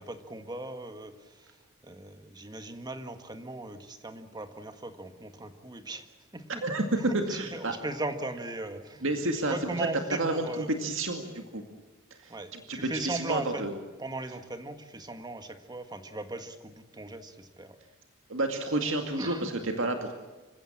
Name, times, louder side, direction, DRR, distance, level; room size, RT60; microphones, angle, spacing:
voice 1, 0.0-6.7 6.9-10.7 12.3-13.7 14.0-17.8 19.2-19.5, right 2 dB, 20° right, 7 dB, 1.7 m, -38 dB
voice 2, 7.1-7.7 9.0-9.9 10.2-11.6 12.2-12.3 12.7-13.7 18.3-20.1, right 2 dB, 65° right, 5 dB, 2.2 m, -30 dB
27.0 x 16.0 x 8.8 m, 1.2 s
head